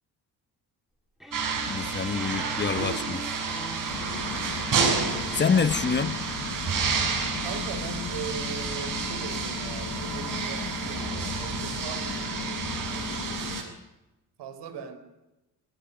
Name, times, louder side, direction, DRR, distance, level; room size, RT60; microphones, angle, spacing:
sound 1, 1.2-6.5, equal, ahead, 3.6 m, -44 dB
sound 2, 1.3-13.6, right 5 dB, 50° right, 6.8 m, -30 dB
voice 1, 1.7-3.2 5.3-6.2, left 5 dB, 25° left, 13 dB, 1.1 m, -26 dB
sound 3, 3.9-13.6, left 7 dB, 45° left, 1.4 m, -37 dB
voice 2, 7.4-13.8 14.4-15.0, right 6 dB, 80° right, 9 dB, 4.0 m, -40 dB
19.5 x 19.5 x 9.3 m, 1.0 s
cardioid pair, 120°, 40 cm